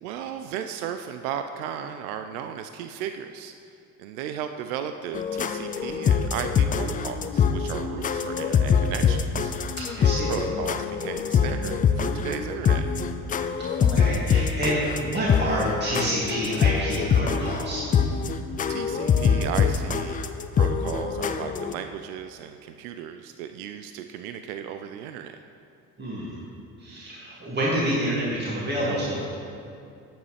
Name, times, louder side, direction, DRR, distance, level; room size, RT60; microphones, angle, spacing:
voice 1, 0.0-3.5 4.0-9.5 10.0-12.9 18.7-20.2 20.5-25.4, right 9 dB, 75° right, 8 dB, 0.6 m, -35 dB
sound 1, 5.1-21.7, left 6 dB, 20° left, 0.4 m, -24 dB
voice 2, 9.8-10.3 13.8-17.9 26.0-26.4 26.8-29.2, right 1 dB, 25° right, -6 dB, 2.2 m, -28 dB
10.5 x 8.9 x 3.3 m, 2.5 s
hypercardioid pair, 65°, 44 cm